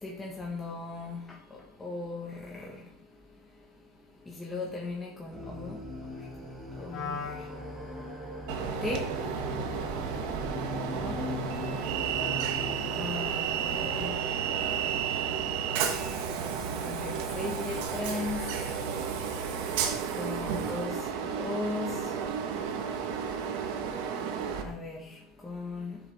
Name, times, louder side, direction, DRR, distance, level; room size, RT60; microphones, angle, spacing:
voice 1, 0.0-2.8 4.3-5.8 6.8-7.4 8.8-9.0 10.9-11.2 13.0-14.2 16.8-18.5 20.2-21.0 21.4-22.0 24.6-26.0, left 3 dB, 10° left, -3 dB, 1.5 m, -37 dB
sound 1, 5.3-14.1, left 1 dB, 10° right, 4.1 m, -40 dB
Wind instrument woodwind instrument, 6.9-13.3, left 4 dB, 45° left, 2.2 m, -43 dB
Train, 8.5-24.6, right 7 dB, 75° right, 1.6 m, -32 dB
12.0 x 7.3 x 3.7 m, 0.72 s
supercardioid pair, 140°, 0 cm